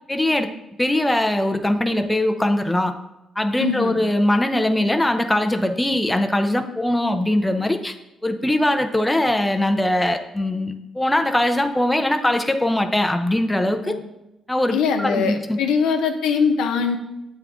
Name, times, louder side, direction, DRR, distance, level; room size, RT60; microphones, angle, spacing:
voice 1, 0.1-0.5 0.8-2.9 3.4-8.0 8.2-13.9 14.5-15.6, left 1 dB, 10° left, 6 dB, 0.5 m, -21 dB
voice 2, 3.6-4.0 13.8-14.0 14.7-17.0, left 5 dB, 90° left, 4 dB, 0.7 m, -22 dB
7.9 x 3.6 x 3.5 m, 0.92 s
cardioid pair, 90°, 0 cm